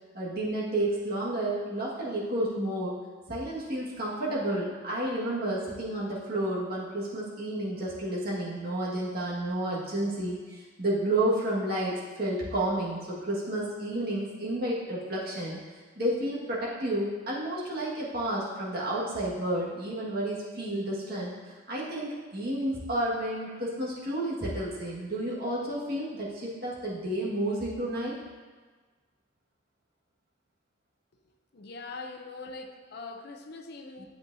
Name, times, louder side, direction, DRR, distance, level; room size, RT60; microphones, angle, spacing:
voice 1, 0.1-2.9 3.3-15.6 16.0-28.2, right 1 dB, 50° right, -6 dB, 1.8 m, -31 dB
voice 2, 31.5-34.1, left 3 dB, 55° left, 4 dB, 0.6 m, -42 dB
8.6 x 7.7 x 2.7 m, 1.4 s
head